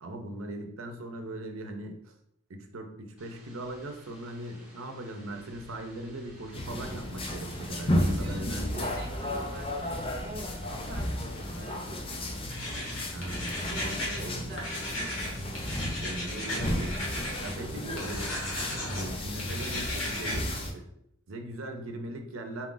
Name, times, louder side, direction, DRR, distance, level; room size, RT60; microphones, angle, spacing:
voice 1, 0.0-2.1 2.5-8.9 13.1-14.7 16.0-17.1 17.4-18.4 18.7-20.9 21.3-22.7, right 1 dB, 85° right, 5 dB, 0.6 m, -40 dB
sound 1, 3.2-11.7, right 1 dB, 5° right, 1.1 m, -55 dB
sound 2, 6.5-20.7, left 1 dB, 25° left, 0.5 m, -33 dB
voice 2, 8.0-12.3 13.7-14.7 17.3-17.9, right 1 dB, 55° right, 3 dB, 0.8 m, -45 dB
sound 3, 12.5-14.2 14.5-17.5 18.0-19.1 19.4-20.4, left 1 dB, 70° left, 1.2 m, -36 dB
4.1 x 2.4 x 3.8 m, 0.76 s
head